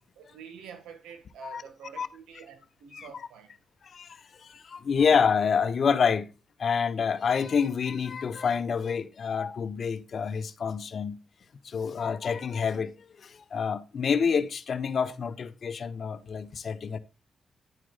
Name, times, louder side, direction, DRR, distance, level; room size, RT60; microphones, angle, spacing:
voice 1, 0.2-3.5, right 7 dB, 90° right, 1.6 m, -47 dB
voice 2, 3.8-6.3 6.6-11.2 11.6-17.0, left 6 dB, 60° left, 0.8 m, -28 dB
9.8 x 4.7 x 3.8 m
supercardioid pair, 60°, 0 cm